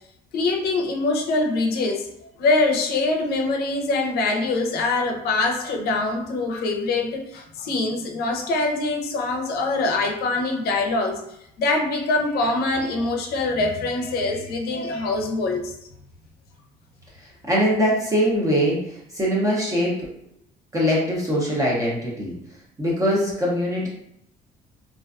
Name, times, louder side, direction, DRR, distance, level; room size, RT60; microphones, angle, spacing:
voice 1, 0.3-2.1 2.4-11.2 11.6-15.7, left 3 dB, 70° left, 3 dB, 0.5 m, -24 dB
voice 2, 17.2-20.1 20.7-22.3 22.8-23.9, equal, 20° right, -5 dB, 0.6 m, -22 dB
2.4 x 2.2 x 2.3 m, 0.75 s
cardioid pair, 110°, 17 cm